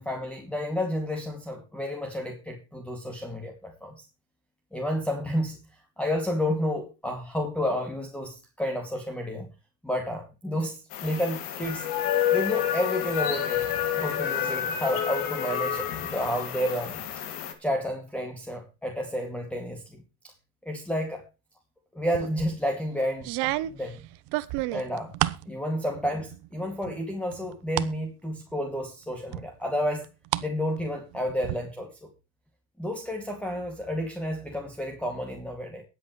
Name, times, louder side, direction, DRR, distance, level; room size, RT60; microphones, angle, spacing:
voice 1, 0.0-4.0 4.7-5.6 6.0-9.5 9.8-11.9 12.3-13.6 14.0-17.0 17.6-20.0 20.6-21.2 21.9-24.0 24.7-25.2 25.5-30.1 30.4-32.1 32.8-35.8, equal, 5° left, 3 dB, 2.3 m, -31 dB
sound 1, 10.9-17.5, left 9 dB, 85° left, 2.5 m, -29 dB
sound 2, 22.1-22.6 23.2-25.5 25.9-26.5 26.8-27.9 28.4-28.5 29.3-30.5 30.8-31.5, right 17 dB, 75° right, 0.9 m, -31 dB
22.5 x 8.1 x 3.1 m, 0.28 s
supercardioid pair, 90°, 40 cm